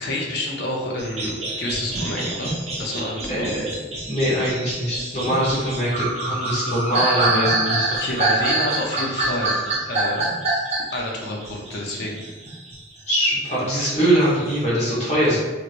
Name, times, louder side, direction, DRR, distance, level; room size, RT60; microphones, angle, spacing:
voice 1, 0.0-3.5 7.9-9.6 9.9-10.3 10.9-12.2 15.3-15.4, left 1 dB, 55° left, -2 dB, 0.6 m, -29 dB
sound 1, 1.0-12.8 13.2-14.5, right 2 dB, 30° right, 0.5 m, -26 dB
voice 2, 3.3-3.7 4.1-8.0 13.1-15.4, equal, 30° left, -7 dB, 1.1 m, -22 dB
2.9 x 2.9 x 2.5 m, 1.2 s
head